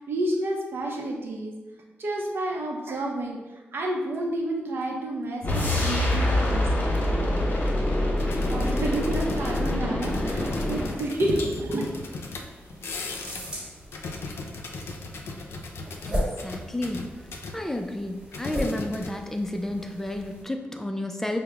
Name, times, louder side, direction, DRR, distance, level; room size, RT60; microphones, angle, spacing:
voice 1, 0.1-1.5 2.0-3.4 3.7-7.2 8.5-11.8, right 1 dB, 65° right, 1 dB, 0.6 m, -30 dB
sound 1, 5.4-11.0, left 1 dB, 50° left, 0.9 m, -25 dB
sound 2, 8.2-13.6 13.8-17.6 18.3-19.4 19.7-19.9, left 3 dB, 80° left, 0.4 m, -37 dB
sound 3, 10.0-20.4, equal, 25° right, 1.2 m, -38 dB
voice 2, 16.0-21.4, left 1 dB, 10° left, 5 dB, 0.3 m, -31 dB
4.7 x 2.1 x 3.3 m, 1.2 s
wide cardioid pair, 115°, 4 cm